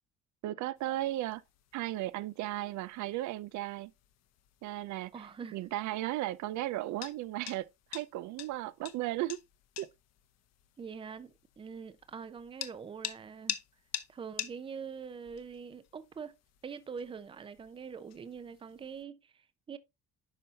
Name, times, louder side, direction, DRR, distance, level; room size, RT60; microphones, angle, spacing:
voice 1, 0.4-1.4 1.7-3.9 4.6-5.1 5.5-9.4 9.8-9.9, right 15 dB, 75° right, 0.5 m, -35 dB
sound 1, 0.8-19.0, left 12 dB, 60° left, 1.0 m, -47 dB
voice 2, 5.1-5.6 10.8-13.6 14.1-16.4 16.6-19.8, right 6 dB, 20° right, 0.5 m, -44 dB
9.9 x 5.4 x 2.8 m
cardioid pair, 165°, 29 cm